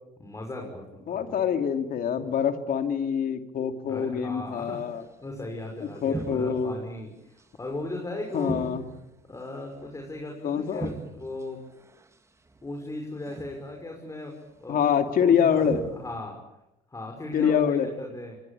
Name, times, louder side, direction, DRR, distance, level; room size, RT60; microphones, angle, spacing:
voice 1, 0.2-1.4 3.9-8.7 9.3-11.6 12.6-14.3 14.6-15.7 15.9-16.4 16.9-18.4, left 2 dB, 20° left, 1 dB, 6.0 m, -37 dB
voice 2, 1.1-5.0 5.8-6.7 8.3-8.9 10.4-10.9 14.7-15.8 17.3-17.9, left 7 dB, 55° left, 6 dB, 2.9 m, -25 dB
sound 1, 4.8-5.0 5.2-5.5 6.0-6.9 7.4-8.0 8.3-10.2 10.6-12.1 12.5-12.8 13.2-13.9 14.6-15.1 15.5-16.2, right 3 dB, 15° right, 2.5 m, -40 dB
27.0 x 23.0 x 8.8 m, 0.93 s
cardioid pair, 110°, 17 cm